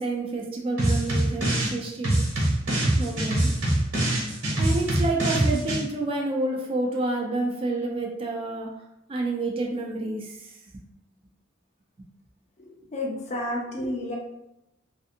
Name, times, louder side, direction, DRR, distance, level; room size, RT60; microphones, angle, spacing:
voice 1, 0.0-2.1 3.0-3.5 4.6-8.8 9.1-10.5, right 2 dB, 30° right, -1 dB, 0.4 m, -29 dB
sound 1, 0.8-1.7 2.0-5.8, right 1 dB, 90° right, 1.1 m, -24 dB
voice 2, 12.6-14.2, left 1 dB, 35° left, -1 dB, 0.5 m, -31 dB
2.5 x 2.5 x 2.5 m, 0.86 s
head